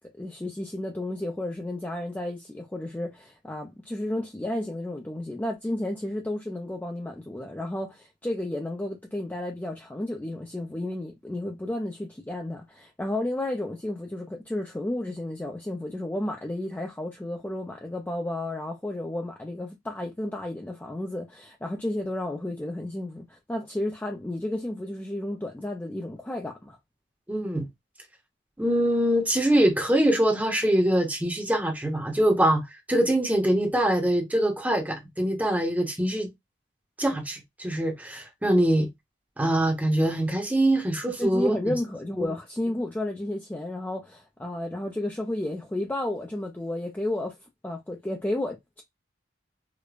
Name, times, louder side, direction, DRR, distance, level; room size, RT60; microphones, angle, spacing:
voice 1, 0.2-26.8 41.2-47.4 47.6-48.8, left 1 dB, 10° left, 0.4 m, -32 dB
voice 2, 27.3-27.7 28.6-32.6 32.9-36.3 37.0-38.9 39.4-41.7 42.2-42.3, right 1 dB, 10° right, 0.7 m, -23 dB
4.9 x 2.1 x 2.3 m
head